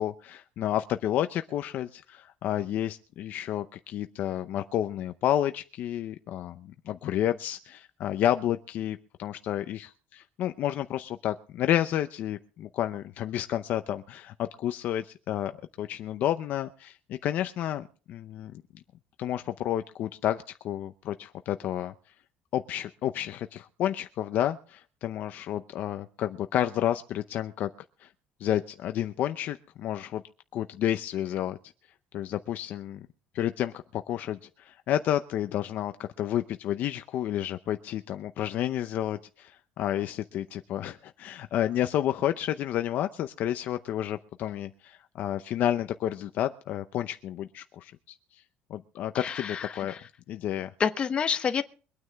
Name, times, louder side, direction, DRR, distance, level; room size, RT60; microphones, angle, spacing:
voice 1, 0.0-15.5 15.8-18.6 19.2-21.9 22.5-27.7 28.0-28.1 28.4-30.2 30.5-31.6 32.1-33.1 33.3-48.4 48.7-49.9 50.3-50.7, left 11 dB, 50° left, 0.7 m, -30 dB
voice 2, 49.1-50.0 50.8-51.6, left 7 dB, 30° left, 1.0 m, -28 dB
23.5 x 9.6 x 3.5 m
cardioid pair, 160°, 4 cm